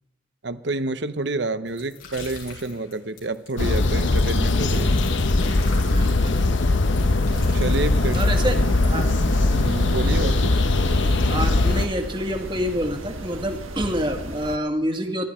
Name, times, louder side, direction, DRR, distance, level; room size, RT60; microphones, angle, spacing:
voice 1, 0.4-5.0 7.1-8.2 9.5-10.6 10.9-11.1, right 2 dB, 60° right, 11 dB, 0.9 m, -29 dB
sound 1, 1.7-9.3, left 4 dB, 90° left, 7.0 m, -41 dB
sound 2, 3.6-11.9, left 2 dB, 65° left, 1.0 m, -20 dB
voice 2, 5.9-6.4 8.1-9.1 11.3-15.3, equal, 25° right, 4 dB, 1.8 m, -27 dB
sound 3, 7.2-14.6, right 1 dB, 90° right, 1.7 m, -36 dB
26.5 x 12.5 x 4.4 m, 1.0 s
head